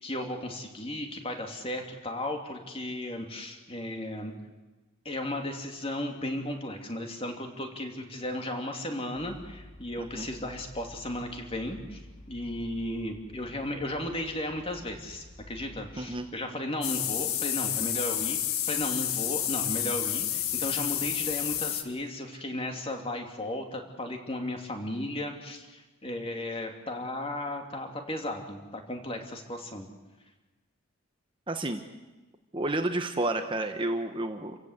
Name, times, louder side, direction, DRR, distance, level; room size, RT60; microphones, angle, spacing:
voice 1, 0.0-4.3 5.0-12.0 12.3-18.4 18.7-29.9, left 1 dB, 25° left, 3 dB, 2.7 m, -35 dB
sound 1, 9.1-16.2, left 1 dB, 55° left, 7.4 m, -50 dB
sound 2, 16.8-21.8, left 11 dB, 85° left, 1.7 m, -30 dB
voice 2, 31.5-31.8 32.5-34.6, right 2 dB, 25° right, 6 dB, 1.0 m, -31 dB
28.5 x 16.0 x 8.1 m, 1.2 s
head